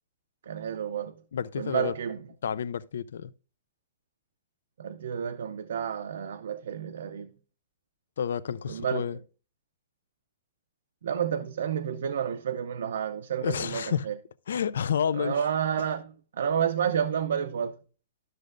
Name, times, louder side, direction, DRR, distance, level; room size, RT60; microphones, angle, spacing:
voice 1, 0.5-1.2 1.6-2.2 4.8-7.3 8.7-9.0 11.0-14.1 15.1-17.8, right 8 dB, 70° right, 0.5 m, -30 dB
voice 2, 1.3-1.9 2.4-3.3 8.2-9.2 13.4-14.1 14.5-15.4 15.8-15.9, left 8 dB, 80° left, 0.4 m, -30 dB
12.5 x 6.2 x 2.5 m
hypercardioid pair, 180°, 0 cm